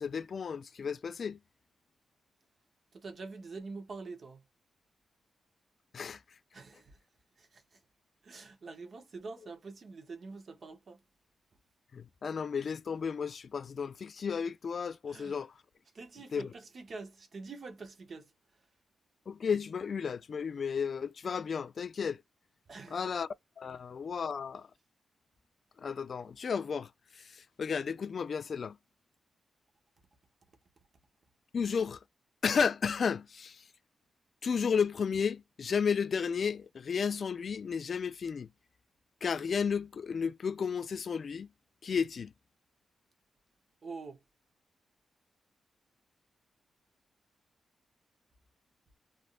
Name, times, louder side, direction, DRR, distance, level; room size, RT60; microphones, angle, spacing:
voice 1, 0.0-1.4 5.9-6.2 11.9-15.5 16.3-16.5 19.3-22.2 22.9-23.3 23.6-24.7 25.8-28.8 31.5-32.0 32.4-33.6 34.4-38.5 39.2-41.5 41.8-42.3, left 6 dB, 50° left, 0.3 m, -33 dB
voice 2, 2.9-4.4 6.5-7.0 7.4-7.8 8.2-11.0 15.1-15.4 15.9-18.3 22.7-23.1 43.8-44.2, right 4 dB, 50° right, 0.8 m, -46 dB
3.4 x 2.4 x 2.4 m
wide cardioid pair, 120°, 0 cm